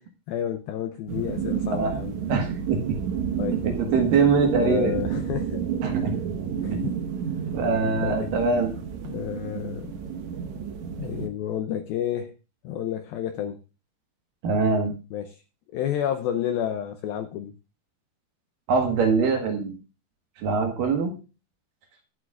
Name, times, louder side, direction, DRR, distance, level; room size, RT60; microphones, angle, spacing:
voice 1, 0.3-2.2 3.4-3.6 4.5-6.0 6.6-6.9 8.0-8.3 9.0-10.0 11.0-12.3 12.6-13.6 15.1-15.4 15.7-17.5, left 10 dB, 85° left, 8 dB, 2.1 m, -30 dB
sound 1, 1.1-11.3, right 7 dB, 90° right, 1.6 m, -30 dB
voice 2, 2.3-2.8 3.6-4.9 5.8-6.1 6.7-6.9 7.5-8.7 14.4-14.9 18.7-19.7 20.4-21.1, right 4 dB, 65° right, 3 dB, 2.6 m, -23 dB
24.0 x 8.0 x 2.4 m, 0.32 s
omnidirectional pair, 5.1 m